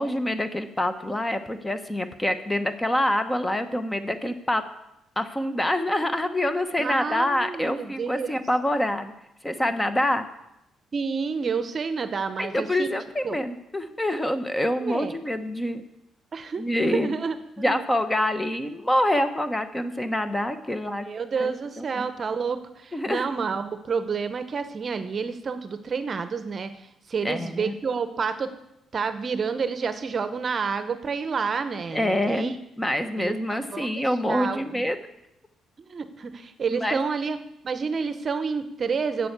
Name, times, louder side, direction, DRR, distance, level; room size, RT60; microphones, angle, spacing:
voice 1, 0.0-4.6 5.2-9.1 9.4-10.3 12.4-15.8 16.6-17.2 17.6-21.1 21.4-21.5 21.8-22.1 22.9-23.3 27.2-27.7 31.9-35.0 36.7-37.0, left 1 dB, 15° left, 10 dB, 0.9 m, -26 dB
voice 2, 6.8-8.4 10.9-12.9 13.2-13.4 14.8-15.1 16.3-17.8 21.0-28.5 28.9-32.6 33.2-34.8 35.9-37.4 37.6-39.3, right 5 dB, 45° right, 11 dB, 0.8 m, -29 dB
7.7 x 6.9 x 8.1 m, 0.84 s
cardioid pair, 90°, 0 cm